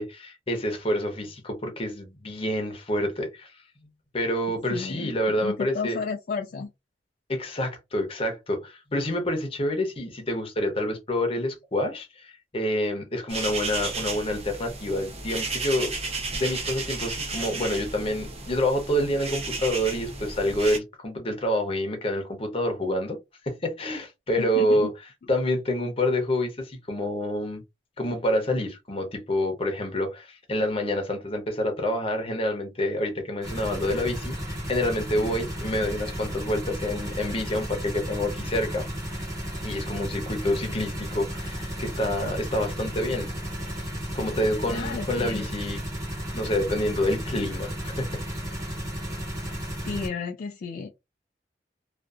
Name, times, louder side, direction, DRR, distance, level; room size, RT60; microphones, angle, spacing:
voice 1, 0.0-3.5 4.1-6.0 7.3-15.9 16.3-23.2 23.5-24.9 25.3-27.6 28.0-38.9 39.6-43.3 44.1-45.8 46.3-48.2, left 1 dB, 35° left, 0.8 m, -27 dB
voice 2, 4.5-6.7 24.4-24.9 44.7-45.4 49.8-50.9, left 5 dB, 50° left, 0.3 m, -33 dB
sound 1, 13.3-20.8, right 3 dB, 35° right, 0.7 m, -33 dB
sound 2, 33.4-50.1, equal, 20° right, 1.2 m, -33 dB
2.6 x 2.4 x 2.4 m
head